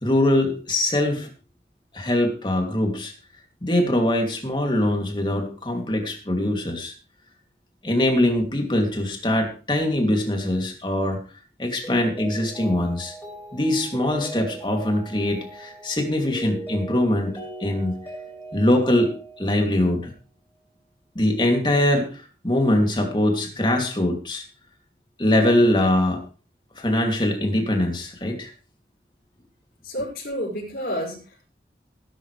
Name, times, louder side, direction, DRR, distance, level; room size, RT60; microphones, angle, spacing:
voice 1, 0.0-1.3 1.9-3.1 3.6-6.9 7.8-11.2 11.6-13.1 13.5-17.9 18.5-19.1 19.4-20.1 21.1-24.4 25.2-26.2 26.8-28.5, left 1 dB, 25° left, 3 dB, 2.9 m, -22 dB
Mallet percussion, 11.8-20.0, right 2 dB, 10° left, 6.9 m, -39 dB
voice 2, 29.8-31.5, equal, 60° left, -7 dB, 6.0 m, -30 dB
18.5 x 11.5 x 3.4 m, 0.35 s
head